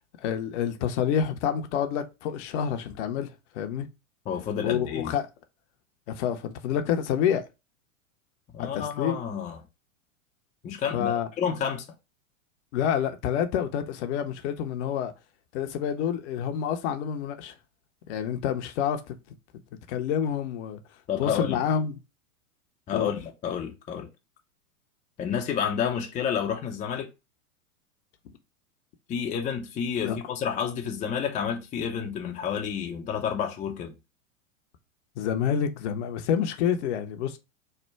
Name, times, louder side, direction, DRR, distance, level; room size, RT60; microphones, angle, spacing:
voice 1, 0.2-3.9 4.6-5.3 6.1-7.4 8.6-9.2 10.9-11.3 12.7-15.1 15.5-17.5 18.1-19.2 19.9-20.8 21.2-21.9 22.9-23.1 30.0-30.2 35.2-37.4, left 8 dB, 55° left, 0.7 m, -28 dB
voice 2, 4.3-5.1 8.5-9.6 10.6-11.9 21.1-21.6 22.9-24.1 25.2-27.1 29.1-33.9, left 7 dB, 20° left, 0.5 m, -30 dB
3.3 x 2.2 x 4.3 m
hypercardioid pair, 105°, 42 cm